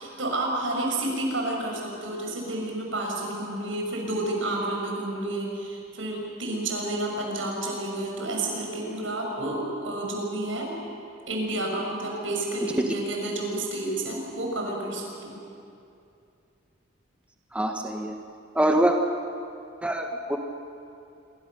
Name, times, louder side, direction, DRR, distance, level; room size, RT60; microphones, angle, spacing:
voice 1, 0.0-10.7 11.3-15.4, right 1 dB, 80° right, 0 dB, 6.9 m, -30 dB
voice 2, 17.5-18.1 18.5-18.9 19.8-20.4, right 1 dB, 5° right, 2 dB, 1.3 m, -24 dB
27.0 x 24.5 x 6.8 m, 2.6 s
head